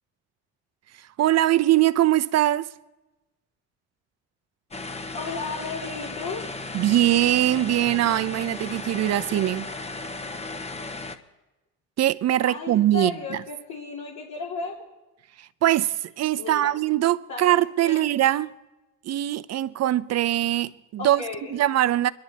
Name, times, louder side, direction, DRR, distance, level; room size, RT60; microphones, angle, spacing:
voice 1, 1.2-2.7 6.7-9.7 12.0-13.4 15.6-18.5 19.0-21.2 21.5-22.1, right 13 dB, 50° right, 0.7 m, -22 dB
sound 1, 4.7-11.2, left 3 dB, 20° left, 1.1 m, -35 dB
voice 2, 5.1-6.5 12.4-14.8 16.4-16.8 17.3-18.1 21.0-21.6, left 4 dB, 65° left, 2.7 m, -34 dB
24.5 x 11.5 x 4.2 m
supercardioid pair, 75°, 32 cm